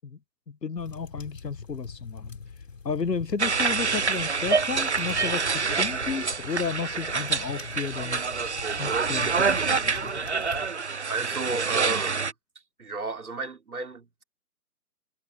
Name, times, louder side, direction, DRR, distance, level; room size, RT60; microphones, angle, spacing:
voice 1, 0.5-2.4 2.8-8.3 8.8-10.1, left 5 dB, 85° left, 1.1 m, -33 dB
sound 1, 0.8-10.7, left 4 dB, 50° left, 4.5 m, -43 dB
sound 2, 3.4-12.3, right 5 dB, 45° right, 0.5 m, -27 dB
voice 2, 11.1-12.3 12.8-14.2, right 3 dB, 65° right, 3.3 m, -33 dB
figure-of-eight pair, 150°, 48 cm